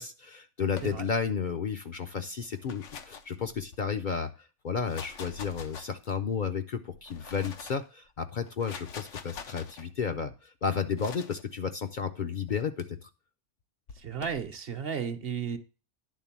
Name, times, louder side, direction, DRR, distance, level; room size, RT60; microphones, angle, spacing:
voice 1, 0.0-13.1, left 6 dB, 50° left, 6 dB, 0.6 m, -32 dB
sound 1, 0.7-1.4 2.4-3.9 4.7-6.3 6.9-7.9 8.4-9.8 11.0-11.4 12.5-12.8 13.9-14.5, left 6 dB, 90° left, 1.2 m, -45 dB
voice 2, 14.0-15.6, right 7 dB, 55° right, 10 dB, 1.0 m, -34 dB
10.5 x 3.7 x 7.2 m, 0.33 s
omnidirectional pair, 1.2 m